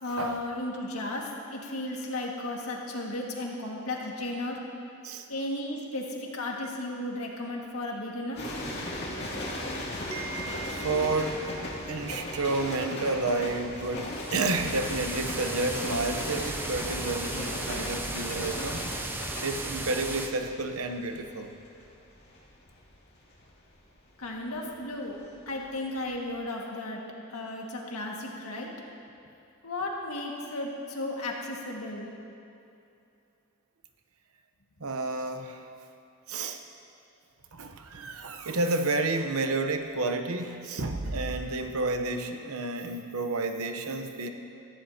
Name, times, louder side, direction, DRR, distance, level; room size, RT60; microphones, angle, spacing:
voice 1, 0.0-4.6 5.3-8.4 24.2-25.2 25.5-27.0 27.3-28.7 29.6-32.1, left 1 dB, 80° left, -1 dB, 1.9 m, -34 dB
sound 1, 8.3-25.6 25.9-26.3, left 1 dB, 50° left, 2.4 m, -37 dB
voice 2, 9.9-18.9 19.4-21.5 34.8-35.6 36.3-36.6 37.5-44.3, right 2 dB, 75° right, 6 dB, 0.9 m, -31 dB
sound 2, 14.1-20.3, right 2 dB, 10° right, 0.6 m, -36 dB
17.5 x 15.0 x 2.9 m, 2.7 s
head